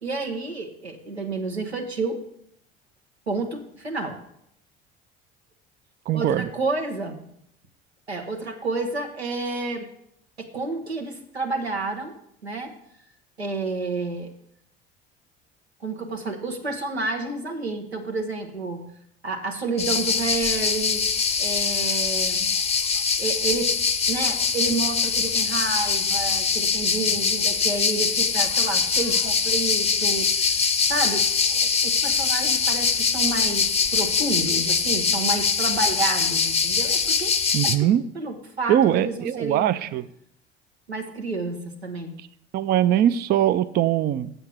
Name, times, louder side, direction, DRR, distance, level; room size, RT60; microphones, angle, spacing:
voice 1, 0.0-2.2 3.3-4.2 6.1-7.2 8.1-9.9 10.4-12.2 12.4-12.7 13.4-14.3 15.8-18.9 19.2-21.0 21.4-22.5 23.2-23.8 24.1-30.3 30.9-37.3 37.6-37.9 38.1-39.8 40.9-42.1, right 3 dB, 85° right, 3 dB, 1.1 m, -30 dB
voice 2, 6.1-6.5 37.5-38.0 38.7-40.1 42.5-44.3, right 11 dB, 30° right, 13 dB, 0.4 m, -21 dB
sound 1, 19.8-37.8, left 5 dB, 20° left, 0.7 m, -23 dB
7.8 x 6.6 x 5.9 m, 0.72 s
figure-of-eight pair, 60°, 31 cm